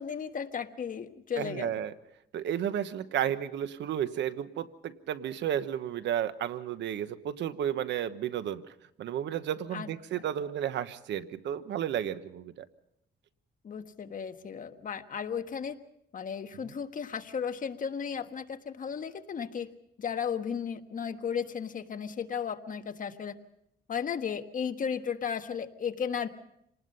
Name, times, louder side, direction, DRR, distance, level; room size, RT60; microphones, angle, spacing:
voice 1, 0.0-1.8 9.7-9.9 13.6-15.7 16.1-19.7 20.0-23.3 23.9-26.3, left 7 dB, 50° left, 7 dB, 1.4 m, -35 dB
voice 2, 1.4-1.9 2.3-12.7 16.6-16.7, right 10 dB, 85° right, 12 dB, 1.1 m, -33 dB
27.0 x 19.5 x 5.5 m, 0.75 s
cardioid pair, 110°, 18 cm